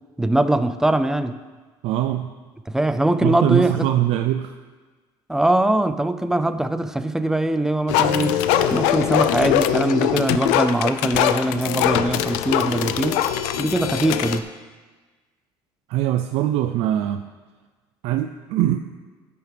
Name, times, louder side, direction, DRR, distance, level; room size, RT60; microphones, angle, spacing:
voice 1, 0.2-1.3 2.7-3.9 5.3-8.4 8.7-13.2 13.6-14.4, right 1 dB, 5° right, 11 dB, 0.5 m, -21 dB
voice 2, 1.8-2.3 3.2-4.5 15.9-17.2 18.0-18.8, right 12 dB, 70° right, 7 dB, 0.5 m, -22 dB
sound 1, 7.9-14.4, left 10 dB, 85° left, 0.5 m, -22 dB
13.5 x 9.6 x 3.4 m, 1.3 s
cardioid pair, 115°, 11 cm